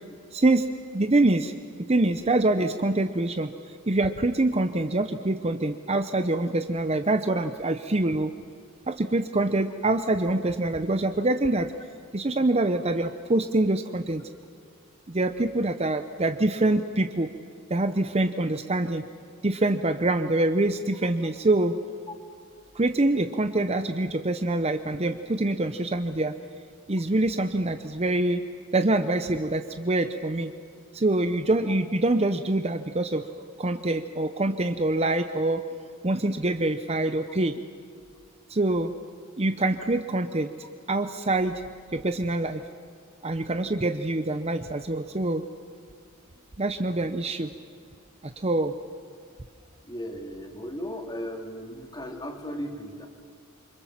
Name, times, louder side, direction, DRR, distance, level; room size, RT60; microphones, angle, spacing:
voice 1, 0.3-0.7 0.9-1.5 1.9-3.5 3.9-8.3 8.9-11.7 12.1-14.3 15.1-17.3 17.7-19.0 19.4-21.8 22.7-26.3 26.9-28.4 28.7-30.5 30.9-33.3 33.6-35.6 36.0-37.6 38.5-38.9 39.4-40.5 40.9-41.6 41.9-42.6 43.2-45.4 46.6-47.5 48.2-48.7, right 2 dB, 30° right, 9 dB, 0.7 m, -25 dB
voice 2, 49.8-53.1, equal, 20° left, 2 dB, 3.1 m, -36 dB
27.5 x 25.0 x 7.4 m, 2.2 s
head